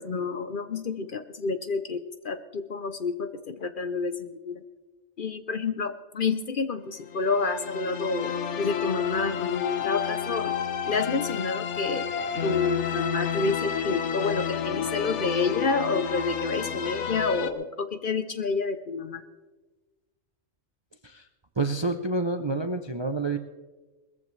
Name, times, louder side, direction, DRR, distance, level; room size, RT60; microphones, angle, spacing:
voice 1, 0.0-4.6 5.2-10.6 10.8-12.1 12.4-19.2, left 4 dB, 50° left, 10 dB, 0.8 m, -29 dB
sound 1, 7.1-17.5, left 8 dB, 70° left, 1.1 m, -30 dB
voice 2, 21.6-23.4, right 3 dB, 30° right, 7 dB, 0.5 m, -28 dB
20.5 x 14.5 x 3.2 m, 1.2 s
omnidirectional pair, 1.3 m